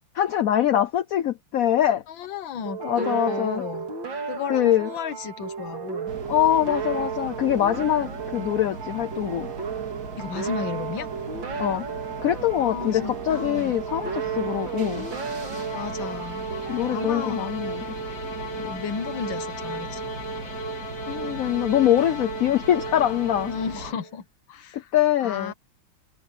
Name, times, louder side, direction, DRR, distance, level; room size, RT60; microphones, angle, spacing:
voice 1, 0.2-2.0 2.8-3.6 4.5-4.9 6.3-9.5 11.6-11.9 12.2-15.1 16.7-18.0 21.1-23.5 24.7-25.5, left 11 dB, 60° left, 1.0 m, -23 dB
voice 2, 2.1-3.9 4.3-6.2 10.2-11.1 12.6-13.8 15.7-16.5 16.9-17.5 18.6-20.0 23.5-24.9 25.2-25.5, left 7 dB, 80° left, 1.9 m, -33 dB
sound 1, 2.7-18.0, right 6 dB, 75° right, 3.4 m, -34 dB
sound 2, 6.1-23.9, right 3 dB, 55° right, 2.5 m, -39 dB
sound 3, 13.6-24.1, right 1 dB, 35° left, 2.5 m, -36 dB
open air
omnidirectional pair, 2.1 m